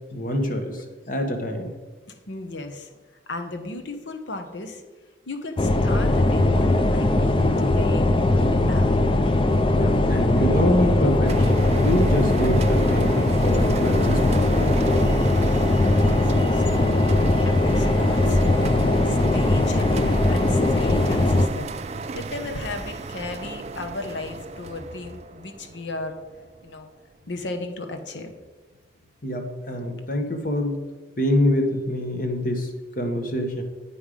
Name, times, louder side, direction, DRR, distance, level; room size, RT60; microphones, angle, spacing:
voice 1, 0.1-1.7 9.7-14.7 29.2-30.8 31.2-33.6, equal, 45° left, 5 dB, 1.1 m, -26 dB
voice 2, 2.1-4.8 5.3-8.1 8.3-9.3 15.9-26.2 26.6-26.9 27.3-28.3, left 2 dB, 75° left, 7 dB, 1.0 m, -36 dB
sound 1, 5.6-21.5, left 2 dB, 30° left, 0.4 m, -20 dB
sound 2, 11.3-26.7, right 3 dB, 35° right, 0.3 m, -34 dB
8.8 x 5.6 x 5.0 m, 1.3 s
head